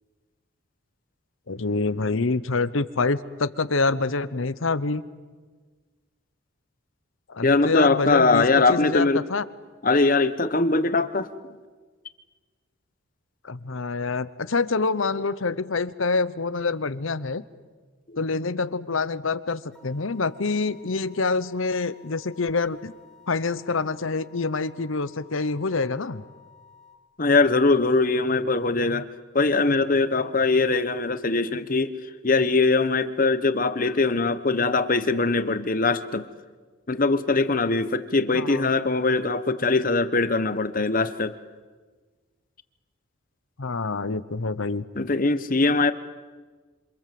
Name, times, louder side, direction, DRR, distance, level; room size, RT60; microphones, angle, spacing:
voice 1, 1.5-5.0 7.3-9.4 13.4-17.4 18.2-22.9 23.3-26.2 38.3-38.7 43.6-44.8, left 3 dB, 75° left, 15 dB, 1.0 m, -26 dB
voice 2, 7.4-9.2 9.8-11.3 27.2-29.1 29.3-32.0 32.2-36.3 36.9-41.3 44.9-45.9, left 3 dB, 40° left, 12 dB, 1.1 m, -21 dB
sound 1, 19.7-27.0, left 6 dB, 5° left, 1.9 m, -54 dB
27.0 x 27.0 x 7.7 m, 1.4 s
head